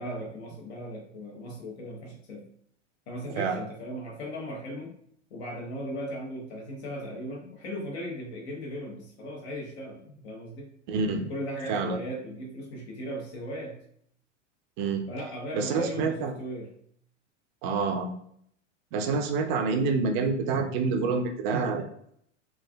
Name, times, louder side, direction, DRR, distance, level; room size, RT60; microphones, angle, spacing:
voice 1, 0.0-2.5 3.1-4.9 5.3-10.7 11.2-13.8 15.1-16.7, equal, 60° left, -2 dB, 0.9 m, -37 dB
voice 2, 10.9-11.3 11.7-12.0 14.8-15.0 15.5-16.3 17.6-18.1 18.9-21.9, right 4 dB, 40° right, 5 dB, 0.5 m, -27 dB
3.3 x 2.4 x 2.2 m, 0.67 s
figure-of-eight pair, 85°, 38 cm